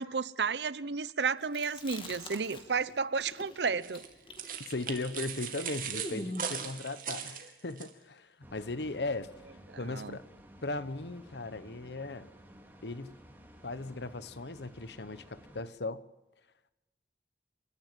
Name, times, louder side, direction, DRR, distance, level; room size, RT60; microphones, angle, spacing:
voice 1, 0.0-4.0 9.8-10.2, right 5 dB, 80° right, 0.8 m, -32 dB
Chewing mastication, 1.4-2.9 3.2-6.6, left 1 dB, 30° left, 2.9 m, -43 dB
sound 1, 3.8-7.9, right 8 dB, 50° right, 2.5 m, -39 dB
voice 2, 4.7-9.3 9.8-10.2 10.6-12.3 12.8-13.1 13.6-16.0, left 2 dB, 80° left, 1.1 m, -37 dB
sound 2, 8.4-15.6, equal, 10° right, 2.8 m, -55 dB
28.5 x 14.5 x 7.5 m
head